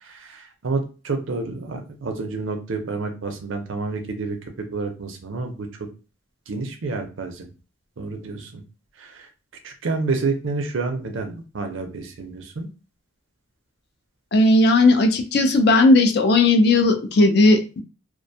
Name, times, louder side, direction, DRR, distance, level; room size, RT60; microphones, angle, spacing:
voice 1, 0.0-4.4 4.7-5.7 6.5-7.5 8.0-8.6 9.0-9.3 9.6-12.7, right 3 dB, 85° right, 5 dB, 0.6 m, -29 dB
voice 2, 14.3-17.8, left 2 dB, 55° left, 6 dB, 0.4 m, -16 dB
2.4 x 2.2 x 2.6 m, 0.33 s
head